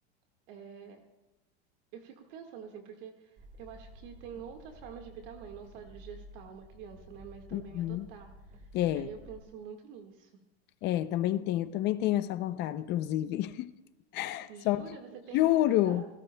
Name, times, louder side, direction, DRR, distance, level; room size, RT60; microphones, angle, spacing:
voice 1, 0.5-1.0 1.9-8.7 8.9-10.4 14.5-16.1, right 7 dB, 55° right, 1.8 m, -47 dB
sound 1, 3.4-9.4, equal, 25° right, 1.3 m, -52 dB
voice 2, 7.5-8.1 8.7-9.1 10.8-13.7 14.1-15.0 15.3-16.0, left 14 dB, 30° left, 0.5 m, -29 dB
27.0 x 17.5 x 2.2 m
supercardioid pair, 155°, 33 cm